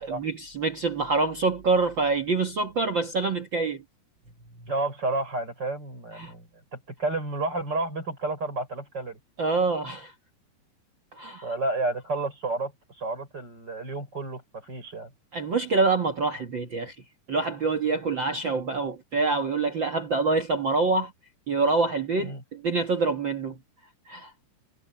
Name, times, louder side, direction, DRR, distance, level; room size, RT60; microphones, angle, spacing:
voice 1, 0.0-3.8 4.6-4.7 6.2-6.3 9.4-10.1 11.1-11.5 15.3-16.9 17.3-21.1 21.5-23.6 24.1-24.3, right 3 dB, 55° right, 1.3 m, -26 dB
voice 2, 4.7-6.5 6.7-9.2 11.4-15.1 22.2-22.4, right 2 dB, 25° right, 6.3 m, -31 dB
omnidirectional pair, 4.3 m